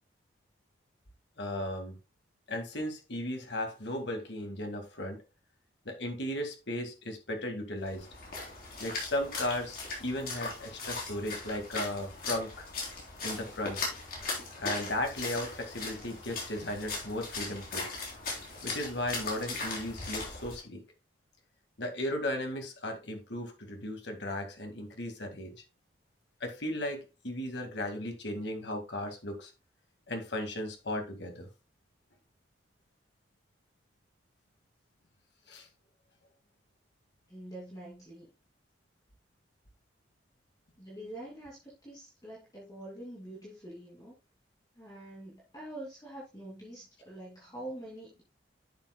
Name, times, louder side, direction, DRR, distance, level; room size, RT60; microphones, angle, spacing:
voice 1, 1.4-2.0 2.5-5.2 5.9-8.1 8.8-12.7 13.2-13.8 14.6-17.9 18.6-20.8 21.8-25.6 26.4-29.5 30.1-31.5 35.5-35.7, left 1 dB, 65° left, 1.9 m, -36 dB
Splash splatter, 7.8-20.6, left 3 dB, 50° left, 3.4 m, -39 dB
voice 2, 37.3-38.3 40.8-44.1 44.8-48.2, right 1 dB, 20° left, 2.5 m, -45 dB
10.5 x 7.3 x 2.2 m
head